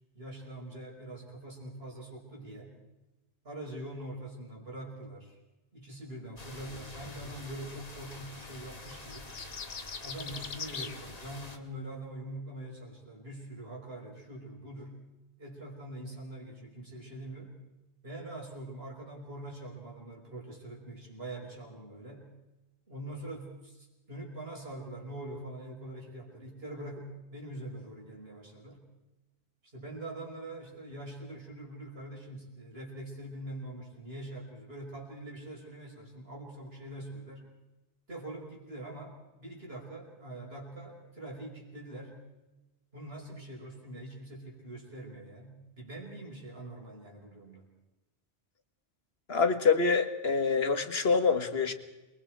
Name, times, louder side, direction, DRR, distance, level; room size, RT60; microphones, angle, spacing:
voice 1, 0.1-2.7 3.4-5.4 5.7-9.3 10.0-15.0 15.4-17.6 18.0-22.3 22.9-28.8 29.7-37.5 38.1-42.2 42.9-47.6, right 1 dB, 55° right, 0 dB, 5.6 m, -44 dB
sound 1, 6.4-11.6, left 2 dB, 35° left, 2.0 m, -47 dB
sound 2, 8.9-11.0, left 6 dB, 85° left, 1.6 m, -41 dB
voice 2, 49.3-51.7, left 5 dB, 60° left, 9 dB, 1.8 m, -26 dB
28.0 x 22.5 x 4.6 m, 1.1 s
omnidirectional pair, 1.2 m